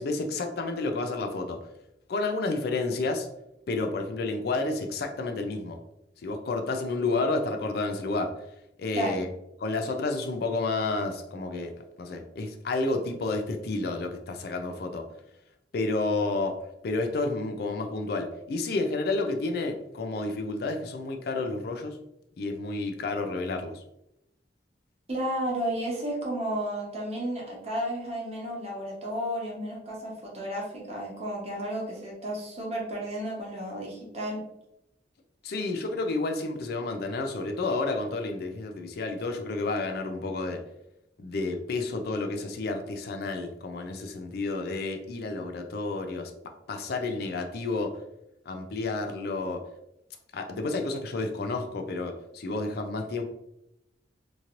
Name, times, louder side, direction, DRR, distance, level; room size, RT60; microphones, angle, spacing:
voice 1, 0.0-1.6 2.1-3.3 3.7-5.8 6.2-8.3 8.8-9.3 9.6-11.7 12.0-15.0 15.7-22.0 22.4-23.8 35.4-40.6 41.2-46.3 46.7-48.0 48.5-49.7 50.3-53.2, left 3 dB, 60° left, 5 dB, 0.4 m, -30 dB
voice 2, 25.1-34.4, right 1 dB, 35° right, -3 dB, 1.0 m, -32 dB
3.0 x 2.8 x 2.5 m, 0.83 s
head